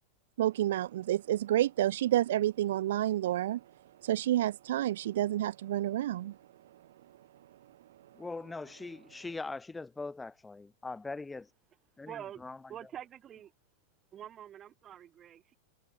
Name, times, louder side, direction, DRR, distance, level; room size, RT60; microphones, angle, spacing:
voice 1, 0.4-3.6 4.0-6.4, right 13 dB, 60° right, 0.3 m, -29 dB
voice 2, 8.1-11.5 12.0-12.6, left 3 dB, 10° left, 1.4 m, -41 dB
voice 3, 12.1-12.4 12.7-13.5 14.1-15.5, right 10 dB, 30° right, 4.4 m, -46 dB
figure-of-eight pair, 90°, 0 cm